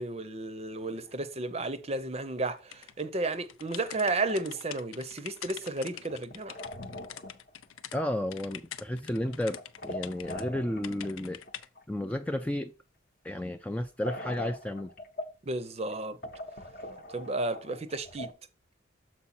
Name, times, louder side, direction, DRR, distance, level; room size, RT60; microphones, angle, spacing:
voice 1, 0.0-6.6 15.4-16.2 17.1-18.3, right 2 dB, 30° right, 0.6 m, -33 dB
sound 1, 0.7-1.3 1.6-1.8 2.3-2.4 2.6-2.7 3.8-4.6 5.6-7.7 7.9-8.5 9.2-11.1 11.5-11.8 14.0-15.5 15.9-16.0 16.2-18.3, equal, 45° left, 0.8 m, -42 dB
sound 2, 2.7-8.0 8.3-10.4 10.8-11.7, left 10 dB, 90° left, 0.5 m, -45 dB
voice 2, 7.9-11.4 11.9-12.7 13.2-14.9, left 1 dB, 5° left, 0.3 m, -32 dB
7.0 x 4.6 x 4.2 m
head